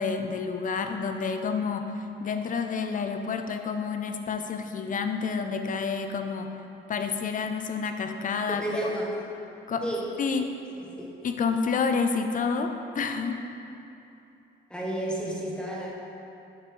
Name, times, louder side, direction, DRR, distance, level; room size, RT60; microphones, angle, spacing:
voice 1, 0.0-6.5 6.9-8.9 9.7-9.8 10.2-10.4 11.2-13.4, left 5 dB, 40° left, 6 dB, 0.5 m, -29 dB
voice 2, 8.5-9.1 9.8-10.0 10.7-11.1 14.7-15.9, right 1 dB, 5° left, -4 dB, 1.1 m, -32 dB
6.6 x 5.8 x 3.2 m, 2.8 s
cardioid pair, 90°, 20 cm